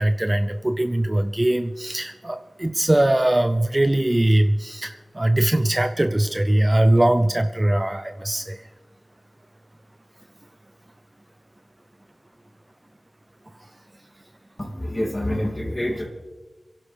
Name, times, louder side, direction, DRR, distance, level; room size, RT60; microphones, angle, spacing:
voice 1, 0.0-8.6 13.5-13.7, right 1 dB, 25° right, 9 dB, 0.5 m, -21 dB
voice 2, 14.6-16.1, left 1 dB, 25° left, 1 dB, 2.6 m, -27 dB
27.5 x 11.5 x 3.4 m, 1.3 s
wide cardioid pair, 80°, 0 cm